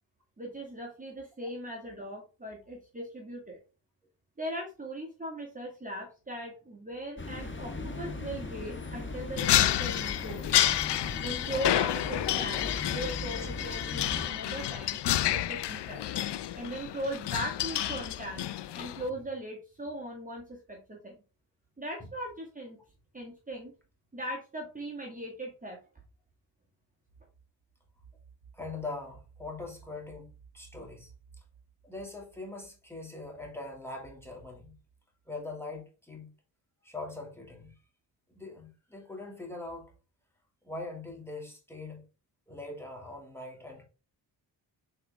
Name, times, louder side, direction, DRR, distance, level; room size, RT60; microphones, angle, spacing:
voice 1, 0.4-3.6 4.4-10.5 11.2-16.0 16.6-18.5 18.7-21.2 21.8-22.8 23.1-23.7 24.1-25.8, right 1 dB, 20° right, 1.8 m, -39 dB
sound 1, 7.2-14.3, left 2 dB, 25° left, 1.4 m, -39 dB
sound 2, 9.4-19.1, left 13 dB, 70° left, 0.6 m, -30 dB
voice 2, 28.5-30.3 30.5-31.1 31.8-34.7 35.3-36.3 36.8-37.7 38.4-39.9 40.6-42.0 42.5-43.8, left 2 dB, 5° left, 2.3 m, -42 dB
6.5 x 4.3 x 3.5 m
cardioid pair, 80°, 44 cm